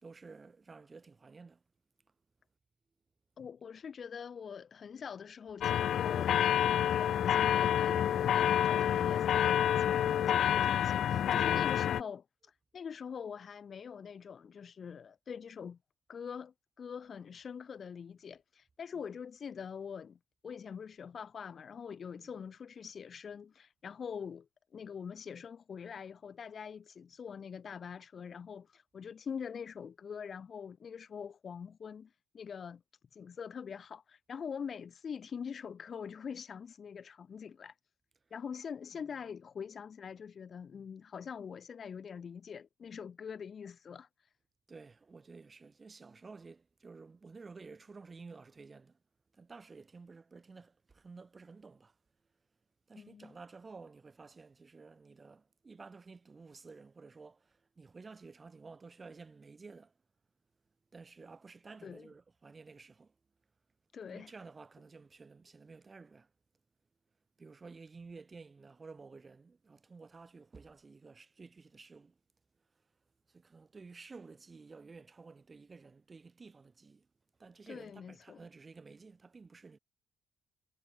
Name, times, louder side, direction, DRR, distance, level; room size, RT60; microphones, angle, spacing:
voice 1, 0.0-1.6 11.1-11.9 18.9-19.0 22.2-22.3 44.7-49.0 49.3-51.9 52.9-59.9 60.9-63.1 64.1-66.3 67.4-72.2 73.3-77.1 77.4-79.8, right 4 dB, 20° right, 3.2 m, -52 dB
voice 2, 3.4-12.2 12.7-15.8 16.1-32.8 33.1-37.7 38.3-44.1 53.0-53.3 61.8-62.1 63.9-64.3 77.7-78.4, left 7 dB, 35° left, 1.6 m, -44 dB
sound 1, 5.6-12.0, left 10 dB, 55° left, 0.5 m, -28 dB
cardioid pair, 165°, 0 cm